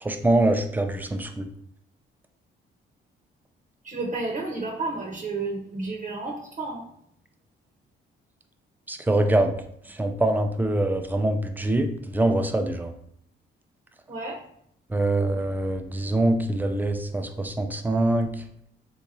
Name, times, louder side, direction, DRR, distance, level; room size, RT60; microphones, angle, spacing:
voice 1, 0.0-1.4 8.9-9.5 9.9-12.9 14.9-18.3, right 1 dB, 10° right, 6 dB, 0.4 m, -24 dB
voice 2, 3.8-6.8 14.1-14.4, right 3 dB, 40° right, -1 dB, 0.8 m, -31 dB
3.6 x 2.9 x 2.6 m, 0.69 s
cardioid pair, 90°, 20 cm